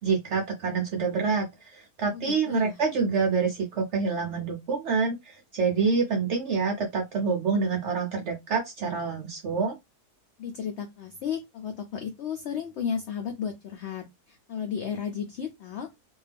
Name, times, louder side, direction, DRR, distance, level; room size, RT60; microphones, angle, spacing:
voice 1, 0.0-9.7, right 5 dB, 70° right, 0.6 m, -27 dB
voice 2, 2.1-2.8 10.4-15.9, left 7 dB, 85° left, 0.6 m, -34 dB
2.6 x 2.3 x 3.3 m
omnidirectional pair, 1.7 m